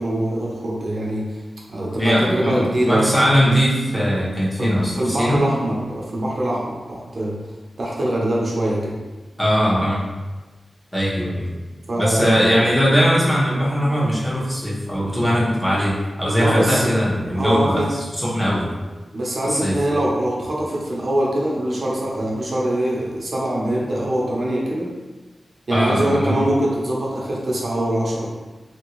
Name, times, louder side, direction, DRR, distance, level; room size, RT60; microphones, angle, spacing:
voice 1, 0.0-1.4 1.7-3.1 4.6-7.3 7.8-9.0 11.9-12.5 16.4-16.9 17.4-17.9 19.1-24.9 25.7-28.3, right 1 dB, 55° right, -4 dB, 0.7 m, -23 dB
voice 2, 2.0-5.5 9.4-10.1 10.9-11.5 11.9-18.7 19.4-19.8 25.7-26.4, equal, 15° left, -7 dB, 1.0 m, -20 dB
2.8 x 2.6 x 3.0 m, 1.2 s
wide cardioid pair, 80°, 0 cm